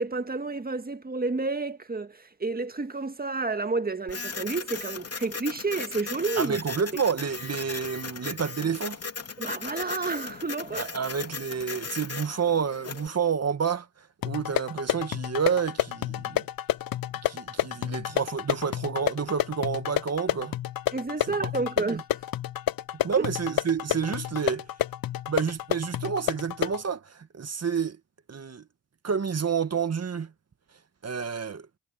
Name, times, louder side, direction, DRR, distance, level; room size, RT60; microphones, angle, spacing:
voice 1, 0.0-6.6 9.4-10.9 20.9-22.0 23.2-23.3, right 3 dB, 20° right, 1.9 m, -30 dB
Printer, 4.1-13.1, left 5 dB, 40° left, 3.0 m, -37 dB
voice 2, 6.4-9.0 10.7-13.9 14.2-16.5 17.2-20.6 21.9-22.0 23.0-24.7 25.3-28.0 28.3-28.6 29.0-30.3 31.0-31.7, right 6 dB, 40° right, 2.0 m, -29 dB
sound 1, 14.2-26.8, left 12 dB, 60° left, 0.8 m, -30 dB
supercardioid pair, 70°, 40 cm